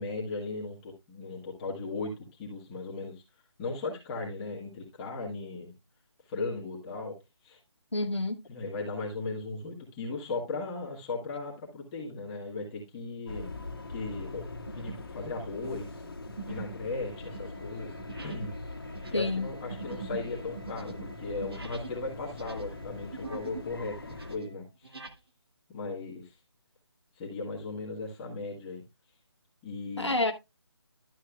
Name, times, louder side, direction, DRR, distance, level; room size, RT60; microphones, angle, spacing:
voice 1, 0.0-2.1 2.4-3.2 3.6-5.7 6.2-7.6 8.5-13.5 13.9-14.5 14.7-16.0 16.5-17.9 18.2-18.5 19.1-25.0 25.7-26.4 27.1-28.8 29.6-30.2, left 3 dB, 15° left, 1.6 m, -37 dB
voice 2, 7.9-8.4 19.1-19.5 30.0-30.3, left 2 dB, 85° left, 1.1 m, -28 dB
sound 1, 13.0-13.3 13.8-14.0 14.7-15.1 15.4-22.0 22.3-23.7 24.0-25.2, right 5 dB, 60° right, 1.6 m, -44 dB
sound 2, 13.3-24.4, left 2 dB, 55° left, 1.7 m, -42 dB
Wind instrument woodwind instrument, 17.1-24.7, left 4 dB, 25° right, 1.8 m, -55 dB
12.0 x 7.3 x 2.3 m
figure-of-eight pair, 150°, 14 cm